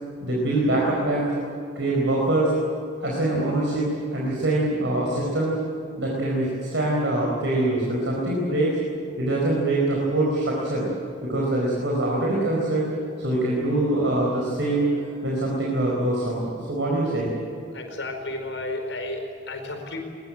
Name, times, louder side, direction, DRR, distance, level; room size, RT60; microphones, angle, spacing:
voice 1, 0.2-1.3 1.7-2.5 3.0-5.6 5.9-8.8 9.2-10.9 11.2-12.9 13.2-14.9 15.2-17.3, right 1 dB, 70° right, -3 dB, 4.7 m, -24 dB
voice 2, 17.7-20.0, left 2 dB, 75° left, 4 dB, 4.8 m, -32 dB
22.5 x 20.5 x 9.1 m, 2.5 s
head